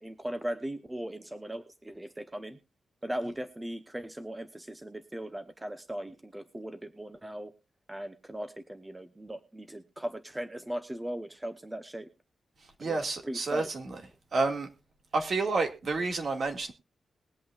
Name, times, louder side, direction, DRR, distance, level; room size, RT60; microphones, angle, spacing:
voice 1, 0.0-2.6 3.0-7.5 7.9-12.1 12.8-13.7, right 1 dB, 15° right, 8 dB, 0.9 m, -38 dB
voice 2, 12.8-14.0 14.3-14.7 15.1-16.7, right 3 dB, 55° right, 5 dB, 2.1 m, -30 dB
21.0 x 8.5 x 2.4 m, 0.30 s
wide cardioid pair, 120°, 0 cm